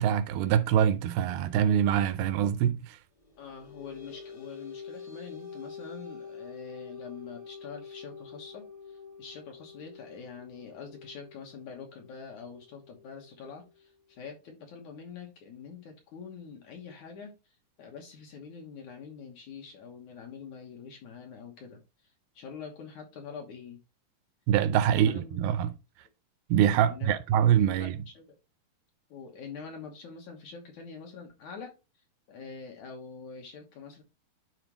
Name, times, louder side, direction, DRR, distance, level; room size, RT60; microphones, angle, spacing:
voice 1, 0.0-3.0 24.5-25.7 26.5-27.9, right 9 dB, 80° right, 2.3 m, -24 dB
sound 1, 3.2-14.2, left 5 dB, 25° left, 0.4 m, -47 dB
voice 2, 3.4-23.8 24.8-25.4 26.8-27.2 27.7-28.4 29.1-34.0, left 5 dB, 65° left, 2.1 m, -45 dB
11.0 x 4.4 x 2.9 m
omnidirectional pair, 4.4 m